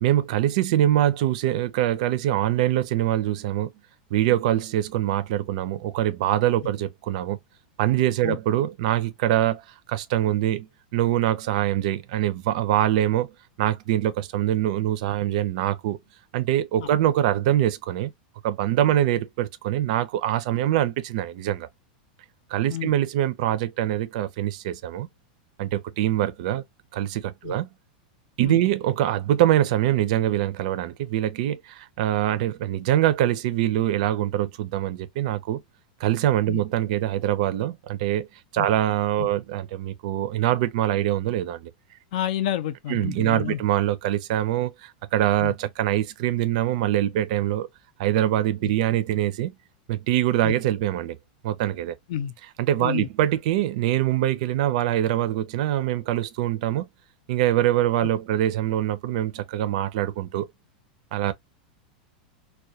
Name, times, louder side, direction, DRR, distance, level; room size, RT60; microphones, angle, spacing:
voice 1, 0.0-3.7 4.1-7.4 7.8-9.6 9.9-13.3 13.6-16.0 16.3-18.1 18.4-21.7 22.5-25.1 25.6-26.6 26.9-27.7 28.4-35.6 36.0-38.3 38.5-41.7 42.9-47.7 48.0-49.5 49.9-51.2 51.4-51.9 52.6-56.9 57.3-60.5 61.1-61.3, right 13 dB, 55° right, 0.4 m, -24 dB
voice 2, 42.1-43.6 45.4-45.5 48.6-48.7 50.4-50.5 52.1-52.3 52.8-53.1 58.0-58.1, left 10 dB, 60° left, 0.5 m, -29 dB
2.3 x 2.2 x 2.7 m
supercardioid pair, 155°, 5 cm